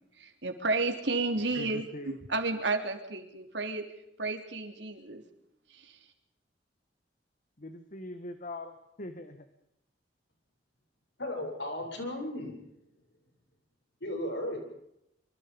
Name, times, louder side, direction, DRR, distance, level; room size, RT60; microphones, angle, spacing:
voice 1, 0.2-1.8 2.3-3.9 4.2-5.2 5.7-6.0, right 3 dB, 70° right, 5 dB, 3.6 m, -31 dB
voice 2, 1.6-2.2 7.6-9.5, left 2 dB, 45° left, 9 dB, 1.7 m, -42 dB
voice 3, 11.2-12.6 14.0-14.6, left 1 dB, 70° left, 3 dB, 7.7 m, -35 dB
26.0 x 25.0 x 5.4 m, 0.82 s
head